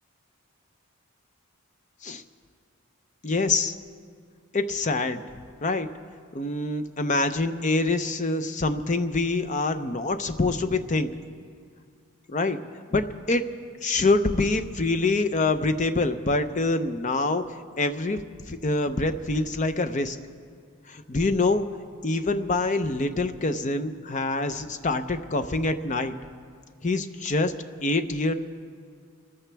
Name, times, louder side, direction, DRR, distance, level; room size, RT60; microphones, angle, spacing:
voice 1, 3.2-3.7 4.5-5.2 5.6-5.9 6.3-11.1 12.3-12.6 12.9-13.5 13.8-20.2 20.9-21.7 22.0-26.2 26.8-27.6 27.8-28.3, left 2 dB, 35° left, 9 dB, 0.6 m, -25 dB
27.0 x 14.0 x 3.4 m, 2.1 s
head